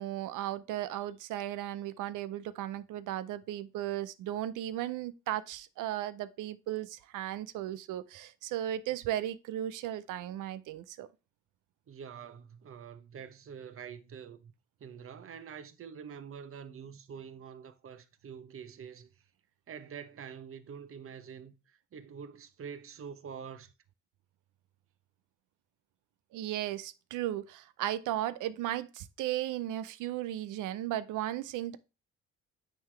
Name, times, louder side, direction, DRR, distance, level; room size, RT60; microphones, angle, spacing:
voice 1, 0.0-11.1 26.3-31.8, right 13 dB, 85° right, 0.6 m, -36 dB
voice 2, 11.9-14.5 14.8-19.1 19.7-21.5 21.9-23.7, right 7 dB, 45° right, 0.9 m, -46 dB
9.2 x 3.8 x 3.2 m
cardioid pair, 90°, 30 cm